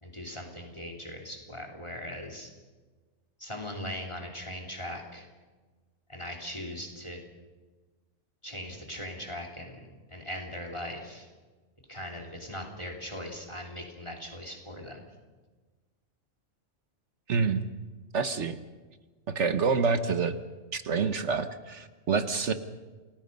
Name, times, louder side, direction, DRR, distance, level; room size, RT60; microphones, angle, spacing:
voice 1, 0.0-2.5 3.4-5.3 6.1-7.2 8.4-11.3 11.9-15.0, equal, 20° left, 2 dB, 3.0 m, -39 dB
voice 2, 17.3-17.6 18.1-18.6 19.3-20.4 20.7-22.5, right 5 dB, 60° right, 10 dB, 1.3 m, -27 dB
29.0 x 20.0 x 5.3 m, 1.3 s
omnidirectional pair, 1.4 m